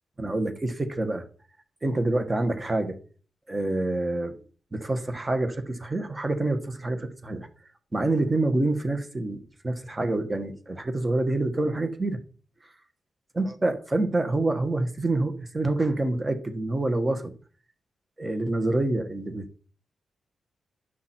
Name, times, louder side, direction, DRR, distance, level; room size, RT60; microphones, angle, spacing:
voice 1, 0.2-1.2 1.8-3.0 3.5-4.3 4.7-7.5 7.9-12.2 13.4-17.3 18.2-19.7, right 2 dB, 20° right, 1.3 m, -27 dB
10.0 x 5.9 x 4.4 m
wide cardioid pair, 120°, 0 cm